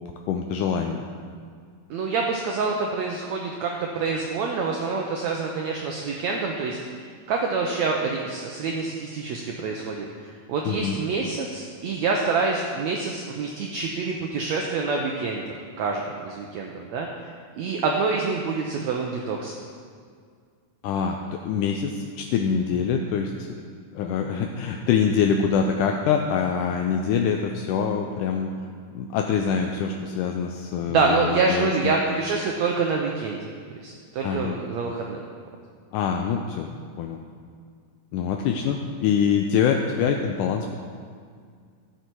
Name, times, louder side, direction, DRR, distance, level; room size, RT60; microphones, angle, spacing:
voice 1, 0.3-1.0 10.7-11.0 20.8-23.6 24.0-28.5 29.0-31.9 34.2-34.6 35.9-36.7 37.0-37.2 38.1-40.8, left 7 dB, 80° left, 3 dB, 1.9 m, -25 dB
voice 2, 1.9-6.8 7.3-17.1 17.6-19.5 30.9-33.4 33.8-35.2, right 4 dB, 85° right, 1 dB, 1.5 m, -26 dB
13.0 x 8.0 x 4.6 m, 2.1 s
omnidirectional pair, 4.1 m